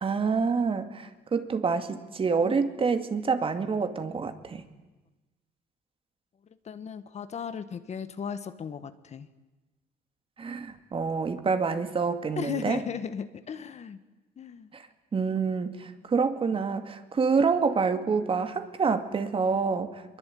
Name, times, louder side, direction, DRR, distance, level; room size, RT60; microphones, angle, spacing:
voice 1, 0.0-4.6 10.4-12.8 14.7-14.9 15.1-19.9, right 5 dB, 30° right, 9 dB, 2.4 m, -27 dB
voice 2, 6.6-9.3 12.4-14.0 14.4-14.7, left 7 dB, 40° left, 12 dB, 1.5 m, -36 dB
25.0 x 22.5 x 9.4 m, 1.1 s
cardioid pair, 110°, 17 cm